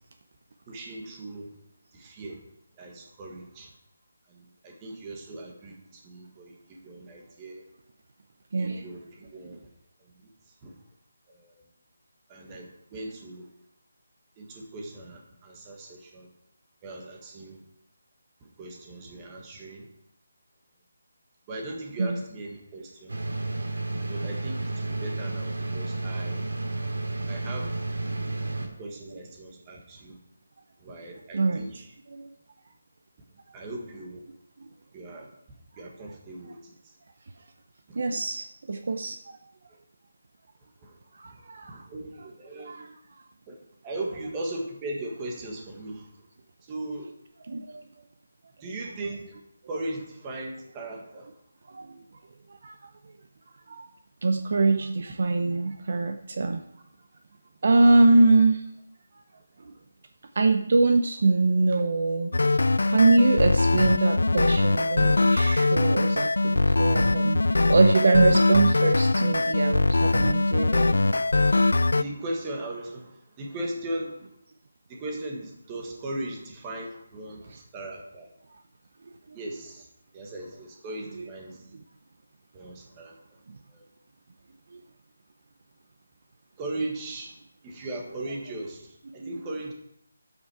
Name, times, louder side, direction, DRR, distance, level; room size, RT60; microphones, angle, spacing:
voice 1, 0.7-1.5 1.9-2.4 2.8-3.7 4.3-7.6 8.6-9.7 10.0-10.1 10.6-10.7 11.3-11.6 12.3-13.5 14.4-16.3 16.8-17.6 18.4-19.9 21.5-23.2 24.1-26.4 27.2-27.7 28.6-30.2 30.8-31.9 33.5-34.2 34.9-35.3 35.8-36.9 37.9-38.0 39.7-39.8 40.8-41.0 41.2-42.9 43.5-46.1 46.6-47.1 48.6-49.3 49.7-51.3 70.7-71.1 72.0-74.3 74.9-78.3 79.3-79.9 80.1-81.6 82.5-83.2 83.7-83.9 86.6-87.4 87.6-89.7, right 1 dB, 10° right, 0 dB, 1.4 m, -38 dB
voice 2, 8.5-8.8 22.0-22.2 28.2-28.4 31.3-31.7 32.1-32.3 37.9-39.4 41.1-41.9 42.5-42.9 47.5-48.0 51.7-51.9 52.5-52.9 53.7-53.9 54.2-56.6 57.6-58.6 59.6-59.7 60.3-70.7 71.6-71.7 77.5-77.6 79.3-79.4 81.1-81.3 81.7-81.8 83.5-83.6 84.7-84.8 89.2-89.3, right 3 dB, 40° right, 6 dB, 0.7 m, -24 dB
sound 1, 23.1-28.7, right 2 dB, 80° right, 3.7 m, -31 dB
sound 2, 62.3-72.0, left 2 dB, 90° left, 0.4 m, -22 dB
12.0 x 8.3 x 4.8 m, 0.75 s
figure-of-eight pair, 180°, 0 cm